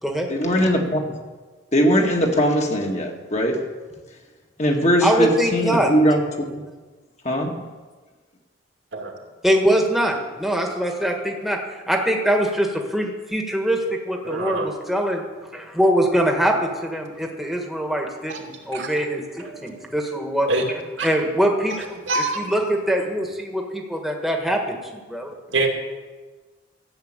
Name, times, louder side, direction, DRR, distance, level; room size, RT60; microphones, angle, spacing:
voice 1, 0.3-1.0 1.7-3.6 4.6-6.2 6.5-6.6 7.3-7.5, equal, 35° left, 1 dB, 1.8 m, -20 dB
voice 2, 5.0-5.9 9.4-11.6 11.9-13.8 14.1-15.2 15.5-22.0 22.4-25.3, equal, ahead, 1 dB, 1.6 m, -23 dB
voice 3, 14.2-14.7 17.2-17.3 18.3-18.4 18.7-18.9 19.4-19.9 20.5-20.6 21.0-21.1 22.1-22.6 25.5-25.7, right 2 dB, 75° right, 1 dB, 2.4 m, -25 dB
14.0 x 7.6 x 9.0 m, 1.3 s
head